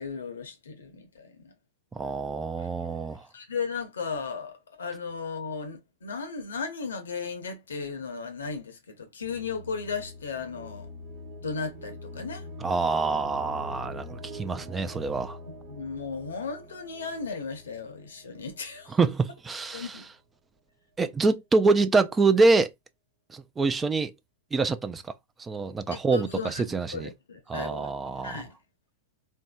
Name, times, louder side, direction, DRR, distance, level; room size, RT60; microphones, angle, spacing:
voice 1, 0.0-1.5 3.3-10.9 11.4-12.5 15.7-18.9 19.7-20.1 26.1-27.9 28.2-28.6, left 5 dB, 80° left, 0.8 m, -35 dB
voice 2, 1.9-3.3 12.6-15.4 18.9-20.0 21.0-22.7 23.3-24.1 24.5-25.0 25.4-27.1 27.5-28.4, right 3 dB, 15° right, 0.4 m, -25 dB
sound 1, 9.2-19.0, left 1 dB, 50° right, 0.9 m, -44 dB
3.4 x 2.7 x 2.3 m
hypercardioid pair, 100°, 0 cm